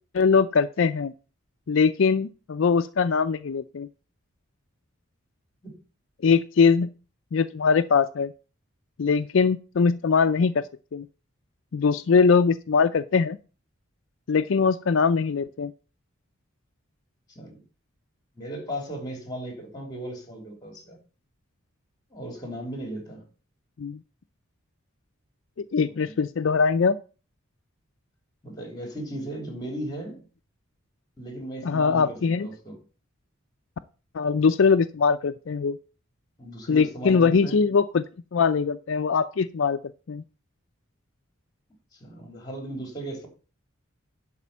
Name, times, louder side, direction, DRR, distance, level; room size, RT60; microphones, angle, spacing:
voice 1, 0.1-1.1 1.7-3.9 6.2-6.9 7.3-8.3 9.0-10.6 10.9-11.1 11.7-13.4 14.3-15.7 23.8-24.0 25.6-27.0 31.6-32.5 34.1-35.8 36.7-38.0 38.3-39.8 40.1-40.2, left 5 dB, 65° left, 0.4 m, -22 dB
voice 2, 17.3-17.6 18.3-21.0 22.1-23.2 25.7-26.2 28.4-30.3 31.2-32.8 36.4-37.6 41.9-43.3, right 1 dB, 20° left, 3.2 m, -36 dB
11.0 x 4.3 x 7.3 m
head